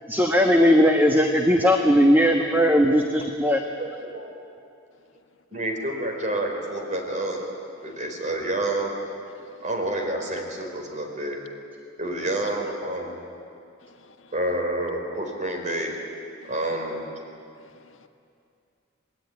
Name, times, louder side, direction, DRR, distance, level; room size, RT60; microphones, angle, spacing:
voice 1, 0.1-3.6, equal, 10° right, 3 dB, 1.3 m, -18 dB
voice 2, 2.9-3.2 3.8-4.4 5.5-7.5 7.8-9.0 9.6-11.4 12.0-13.2 14.3-16.0 16.4-17.1, right 1 dB, 40° right, 2 dB, 4.5 m, -29 dB
voice 3, 13.8-14.3 16.4-16.5 17.6-18.1, left 3 dB, 70° left, 6 dB, 1.6 m, -55 dB
26.5 x 19.5 x 9.8 m, 2.4 s
head